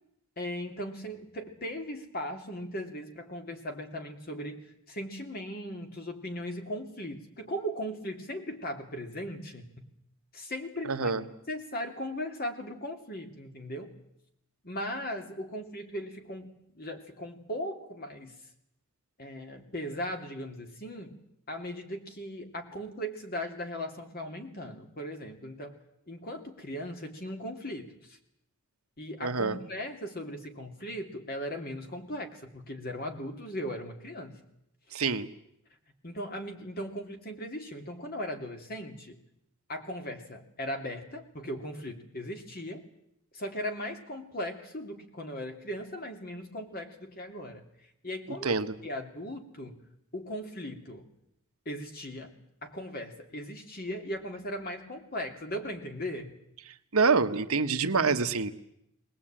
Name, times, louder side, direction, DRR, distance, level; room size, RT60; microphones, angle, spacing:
voice 1, 0.4-9.9 10.3-13.9 14.6-18.4 19.2-25.8 26.1-28.2 29.0-34.4 36.0-39.2 39.7-42.9 43.3-47.6 48.0-48.6 48.8-49.8 50.1-51.1 51.6-56.4 57.8-58.1, equal, 40° left, 4 dB, 2.8 m, -38 dB
voice 2, 10.8-11.2 29.2-29.6 34.9-35.3 48.3-48.7 56.9-58.5, right 4 dB, 75° right, 9 dB, 1.2 m, -26 dB
21.5 x 19.0 x 8.9 m, 0.79 s
head